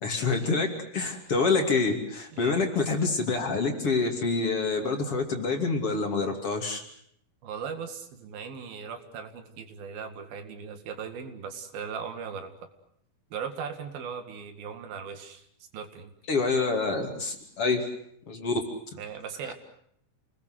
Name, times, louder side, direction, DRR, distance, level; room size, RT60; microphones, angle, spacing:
voice 1, 0.0-6.8 16.3-17.9 18.3-18.6, left 4 dB, 40° left, 3 dB, 3.3 m, -27 dB
voice 2, 7.4-12.5 13.3-15.5 15.7-16.1 19.0-19.5, right 6 dB, 75° right, 7 dB, 3.8 m, -38 dB
29.0 x 20.5 x 7.9 m, 0.69 s
omnidirectional pair, 4.4 m